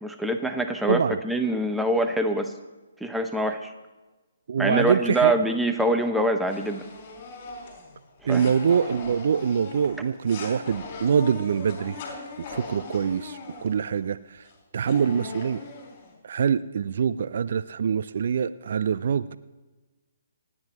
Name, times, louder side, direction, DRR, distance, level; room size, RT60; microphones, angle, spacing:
voice 1, 0.0-2.5 3.0-3.7 4.6-6.8 8.3-8.5, right 1 dB, 5° right, 6 dB, 0.7 m, -25 dB
voice 2, 0.9-1.2 4.5-5.3 8.2-12.0 12.5-14.5 14.7-15.6 16.2-19.4, right 7 dB, 50° right, 14 dB, 0.4 m, -24 dB
sound 1, 6.5-14.0 14.4-14.5 14.8-16.1, left 3 dB, 30° left, 4.0 m, -39 dB
27.5 x 9.7 x 2.9 m, 1.2 s
figure-of-eight pair, 130°, 0 cm